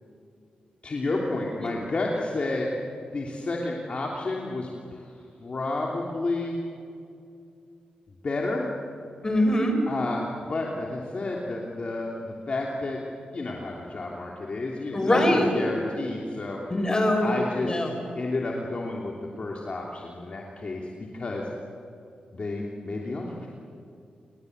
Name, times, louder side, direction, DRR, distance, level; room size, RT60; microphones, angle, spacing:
voice 1, 0.8-2.7 3.1-5.1 5.4-6.6 8.2-8.7 9.9-13.0 13.3-16.9 17.2-17.8 18.1-21.5 22.3-23.5, left 2 dB, 45° left, -2 dB, 3.1 m, -31 dB
voice 2, 9.2-9.8 14.9-15.5 16.7-17.3 17.6-17.9, left 1 dB, 25° left, 4 dB, 6.1 m, -22 dB
29.0 x 22.0 x 8.1 m, 2.5 s
cardioid pair, 85°, 3 cm